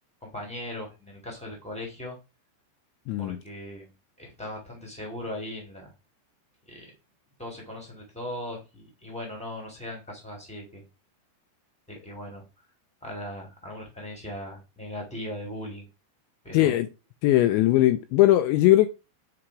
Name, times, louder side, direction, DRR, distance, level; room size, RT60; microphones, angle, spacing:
voice 1, 0.2-2.1 3.2-3.9 4.2-5.9 6.6-6.9 7.4-10.8 11.9-12.4 13.0-15.9 16.4-16.7, left 1 dB, 5° left, 1.3 m, -38 dB
voice 2, 3.1-3.4 16.5-16.9 17.2-18.9, left 15 dB, 80° left, 2.7 m, -20 dB
8.9 x 4.0 x 4.8 m
omnidirectional pair, 5.6 m